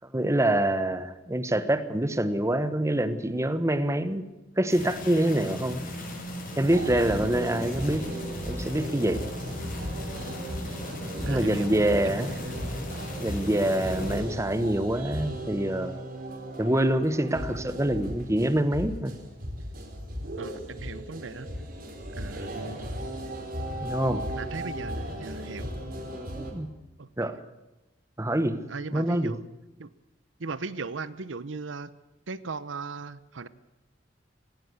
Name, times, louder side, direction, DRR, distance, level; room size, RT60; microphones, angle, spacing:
voice 1, 0.1-4.2 4.6-5.8 6.6-8.1 8.5-9.2 11.2-12.3 13.2-16.0 16.6-19.2 23.8-24.2 26.3-26.7 27.2-27.4 28.2-28.6 28.9-29.4, right 1 dB, 15° right, 12 dB, 1.2 m, -26 dB
sound 1, 4.7-14.2, left 1 dB, 45° left, 6.6 m, -37 dB
sound 2, 6.6-26.5, equal, 50° right, 4.6 m, -36 dB
voice 2, 11.3-12.5 20.4-21.5 22.1-22.5 24.3-25.7 27.0-27.3 28.7-29.4 29.8-29.9 30.4-31.9 32.3-33.5, right 4 dB, 85° right, 16 dB, 0.9 m, -38 dB
18.0 x 17.5 x 8.2 m, 1.0 s
head